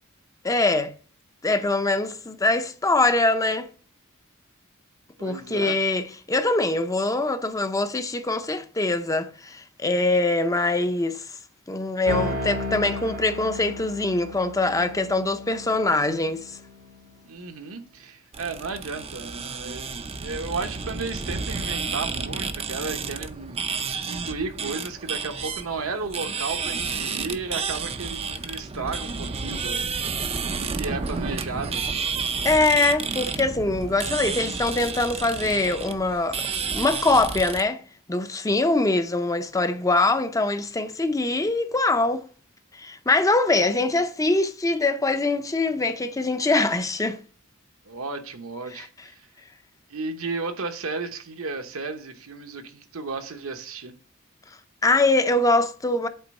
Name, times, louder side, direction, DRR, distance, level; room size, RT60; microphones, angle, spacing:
voice 1, 0.4-0.9 1.4-3.7 5.2-11.2 11.7-16.6 32.4-36.4 36.7-37.8 38.1-42.2 42.7-47.2 48.8-48.9 54.8-56.1, left 2 dB, 15° left, 0.6 m, -23 dB
voice 2, 5.2-5.8 17.2-31.9 47.8-49.3 49.9-53.9, right 4 dB, 70° right, 1.0 m, -34 dB
sound 1, 12.0-17.0, left 1 dB, 90° right, 1.6 m, -34 dB
sound 2, 18.3-37.6, right 5 dB, 30° right, 0.5 m, -31 dB
8.0 x 3.9 x 5.3 m
head